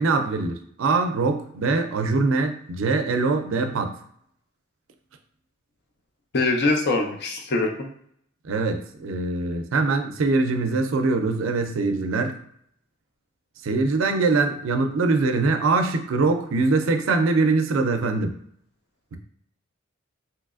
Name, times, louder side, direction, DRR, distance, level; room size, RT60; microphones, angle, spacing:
voice 1, 0.0-3.9 8.4-12.3 13.6-18.3, right 3 dB, 75° right, 6 dB, 0.4 m, -23 dB
voice 2, 6.3-7.9, left 2 dB, 55° left, 2 dB, 0.6 m, -23 dB
3.1 x 2.9 x 2.4 m, 0.66 s
head